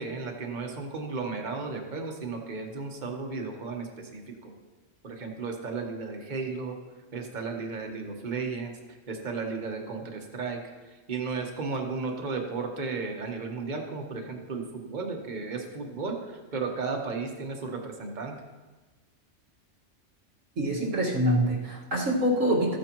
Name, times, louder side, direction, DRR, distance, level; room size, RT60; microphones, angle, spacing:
voice 1, 0.0-4.5 5.0-6.7 7.1-8.7 9.1-10.6 11.1-18.3, right 4 dB, 40° right, 2 dB, 1.3 m, -34 dB
voice 2, 20.6-22.8, equal, 90° right, -3 dB, 2.2 m, -25 dB
14.0 x 9.4 x 3.0 m, 1.3 s
omnidirectional pair, 1.3 m